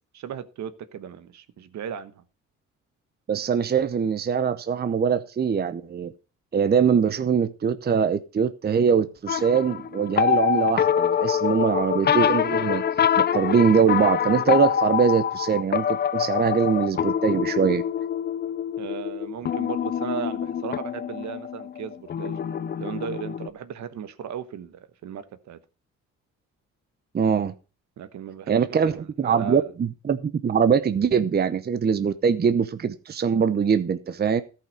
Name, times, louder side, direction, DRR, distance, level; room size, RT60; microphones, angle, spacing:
voice 1, 0.1-2.2 18.8-22.4 22.8-25.6 28.0-29.7, right 8 dB, 65° right, 1.2 m, -36 dB
voice 2, 3.3-6.1 6.5-12.8 13.2-17.8 27.1-27.5 28.5-34.4, right 6 dB, 30° right, 0.7 m, -22 dB
sound 1, 9.3-23.5, left 8 dB, 35° left, 0.5 m, -25 dB
13.5 x 5.7 x 5.2 m
cardioid pair, 90°, 30 cm